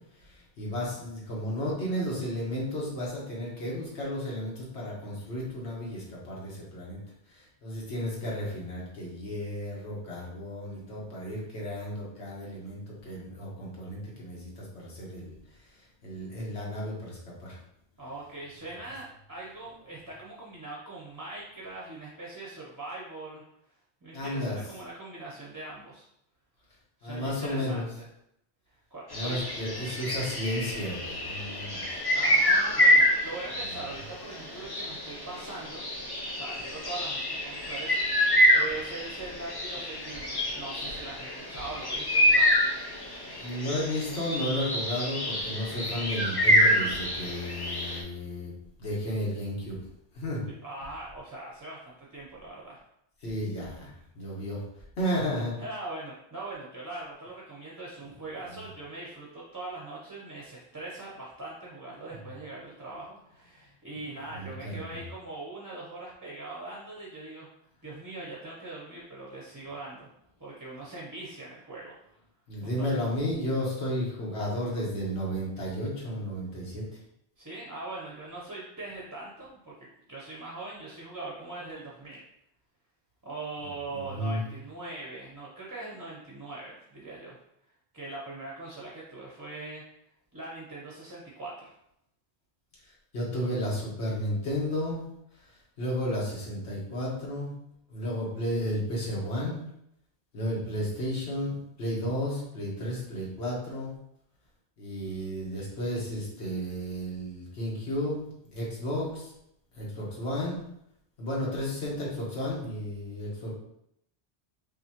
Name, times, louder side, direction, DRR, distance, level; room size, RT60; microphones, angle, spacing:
voice 1, 0.2-7.0 7.3-15.3 16.0-17.6 24.1-24.6 27.0-27.9 29.1-31.8 43.4-48.5 48.8-49.8 50.1-50.4 53.2-53.9 54.1-54.6 55.0-55.6 62.1-62.2 64.3-65.0 72.5-76.8 83.9-84.4 93.1-95.0 95.8-97.5 97.9-99.6 100.3-101.5 101.8-103.9 104.8-109.3 109.7-110.6 111.2-113.6, equal, 70° left, -4 dB, 1.5 m, -33 dB
voice 2, 18.0-23.4 24.0-26.0 27.0-28.0 28.9-29.4 32.1-35.8 36.3-42.7 50.5-52.8 55.6-67.5 67.8-70.1 70.4-71.9 72.6-73.1 77.4-79.7 80.1-82.2 83.2-87.4 87.9-89.8 90.3-91.7, right 2 dB, 25° right, -5 dB, 0.5 m, -41 dB
sound 1, 29.1-48.0, equal, 25° left, 0.6 m, -27 dB
5.4 x 2.5 x 2.9 m, 0.77 s
omnidirectional pair, 1.1 m